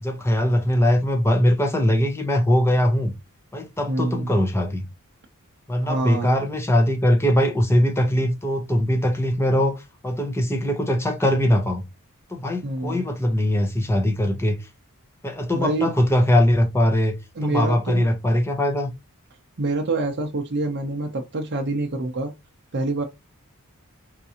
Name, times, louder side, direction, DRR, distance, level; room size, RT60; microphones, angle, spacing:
voice 1, 0.0-3.1 3.5-4.9 5.7-11.8 12.3-14.7 15.2-18.9, left 1 dB, 10° left, 0.8 m, -21 dB
voice 2, 3.9-4.3 5.8-6.4 12.6-13.1 15.5-15.9 17.4-18.1 19.6-22.3 22.7-23.0, right 2 dB, 50° right, 0.6 m, -26 dB
4.5 x 2.5 x 2.7 m
head